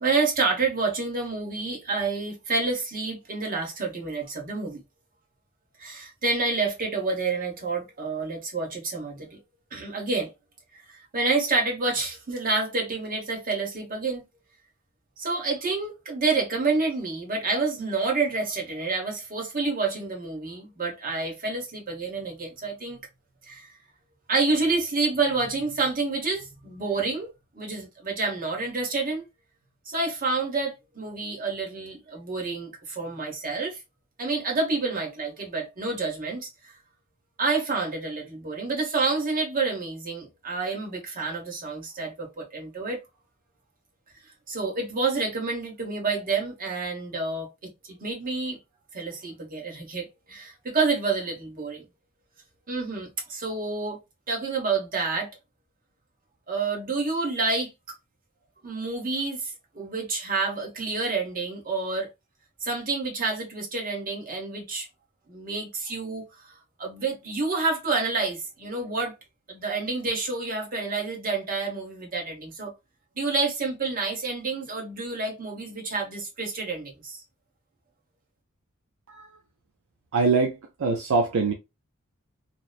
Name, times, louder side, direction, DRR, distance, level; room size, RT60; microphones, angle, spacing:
voice 1, 0.0-4.8 5.8-9.4 9.7-10.3 10.9-14.2 15.2-23.0 23.5-23.7 24.3-27.3 27.5-29.2 29.9-33.8 34.2-36.5 37.4-43.0 44.5-47.5 47.9-48.6 48.9-51.8 52.7-54.0 54.3-55.3 56.5-57.7 58.6-62.1 62.6-64.9 65.3-66.5 66.8-69.1 69.5-72.7 73.1-77.2, right 3 dB, 40° right, 1.0 m, -28 dB
voice 2, 79.1-79.4 80.1-81.5, right 4 dB, 65° right, 0.4 m, -24 dB
2.9 x 2.0 x 2.3 m
head